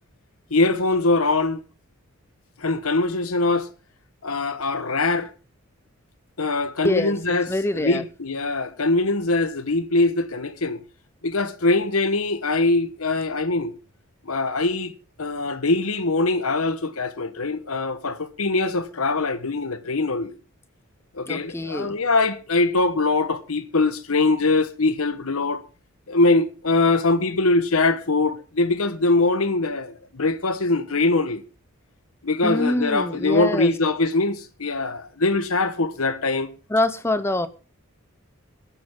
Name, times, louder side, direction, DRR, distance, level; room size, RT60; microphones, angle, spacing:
voice 1, 0.5-1.6 2.6-3.7 4.2-5.3 6.4-10.8 11.2-13.7 14.2-14.9 15.2-20.4 21.1-25.6 26.1-31.4 32.2-36.5, left 3 dB, 90° left, 1.2 m, -22 dB
voice 2, 6.8-7.1 7.5-8.0 21.3-21.9 32.4-33.7 36.7-37.5, left 1 dB, 10° left, 0.7 m, -24 dB
23.0 x 8.8 x 3.7 m
head